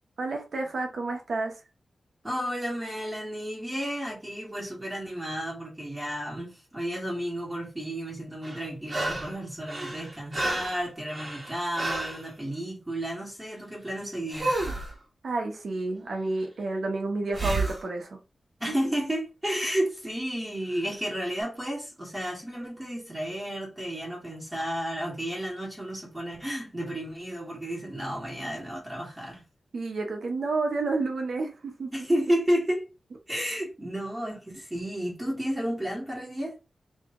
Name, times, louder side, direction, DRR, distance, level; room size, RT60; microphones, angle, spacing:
voice 1, 0.2-1.6 15.2-18.2 29.7-31.9, right 3 dB, 65° right, 1.1 m, -30 dB
voice 2, 2.2-14.5 18.6-29.4 31.9-32.9 33.3-36.6, equal, 10° right, 1.7 m, -32 dB
sound 1, 8.4-9.4 9.7-12.2 14.3-14.9 17.3-17.8 20.8-20.9, right 2 dB, 30° right, 1.4 m, -31 dB
3.2 x 3.0 x 3.7 m
wide cardioid pair, 130°, 0 cm